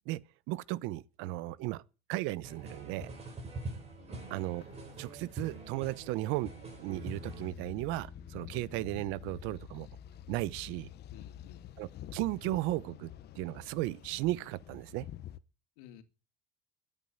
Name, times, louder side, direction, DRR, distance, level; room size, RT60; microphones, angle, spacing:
voice 1, 0.5-1.8 2.1-3.1 4.3-4.6 5.0-9.9 10.3-10.9 11.8-15.1, right 18 dB, 75° right, 0.9 m, -35 dB
sound 1, 2.4-7.5, right 2 dB, 30° right, 7.8 m, -44 dB
voice 2, 4.0-4.4 11.1-11.7 15.8-16.0, left 11 dB, 85° left, 2.4 m, -55 dB
sound 2, 4.3-15.4, left 11 dB, 55° left, 1.2 m, -50 dB
Bass guitar, 6.9-13.2, left 5 dB, 25° left, 4.9 m, -54 dB
13.0 x 9.2 x 9.1 m
supercardioid pair, 105°, 20 cm